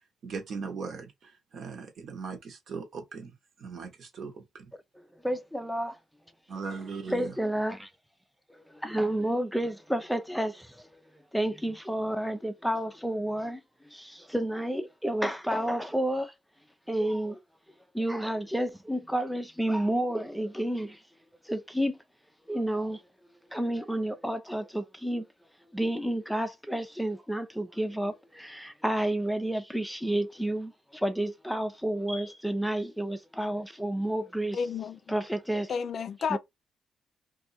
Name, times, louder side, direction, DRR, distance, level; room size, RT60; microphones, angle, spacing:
voice 1, 0.2-3.3 3.6-4.7 6.5-7.3, right 5 dB, 60° right, 1.2 m, -39 dB
voice 2, 5.2-6.0 7.1-7.9 8.5-11.0 11.3-13.6 13.9-16.3 16.9-17.4 17.9-21.0 21.5-22.0 22.5-23.0 23.5-25.3 25.7-34.6 35.1-35.8 36.3-36.4, right 1 dB, ahead, 0.5 m, -30 dB
voice 3, 34.5-35.0 35.7-36.4, left 6 dB, 55° left, 0.5 m, -31 dB
2.6 x 2.4 x 4.1 m
cardioid pair, 90°, 0 cm